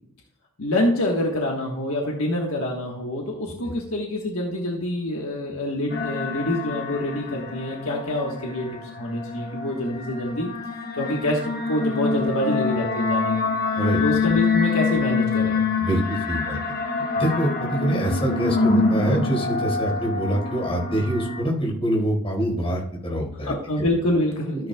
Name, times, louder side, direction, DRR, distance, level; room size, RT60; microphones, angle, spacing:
voice 1, 0.6-10.5 11.0-13.4 14.0-15.7 23.5-24.6, left 1 dB, 65° left, -1 dB, 1.4 m, -26 dB
sound 1, 5.9-21.4, left 4 dB, 40° left, 1.3 m, -26 dB
voice 2, 15.8-16.6 17.2-23.5 24.5-24.7, right 1 dB, 25° left, -2 dB, 4.3 m, -25 dB
13.5 x 9.4 x 2.3 m, 0.74 s
head